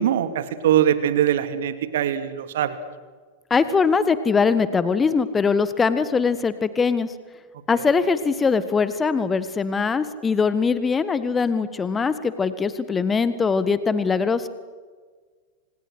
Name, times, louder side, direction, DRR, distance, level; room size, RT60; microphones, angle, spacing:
voice 1, 0.0-2.8 7.8-7.9, right 10 dB, 60° right, 11 dB, 2.5 m, -22 dB
voice 2, 3.5-7.1 7.7-14.5, left 5 dB, 15° left, 14 dB, 1.6 m, -21 dB
30.0 x 27.0 x 6.4 m, 1.5 s
figure-of-eight pair, 90°, 0 cm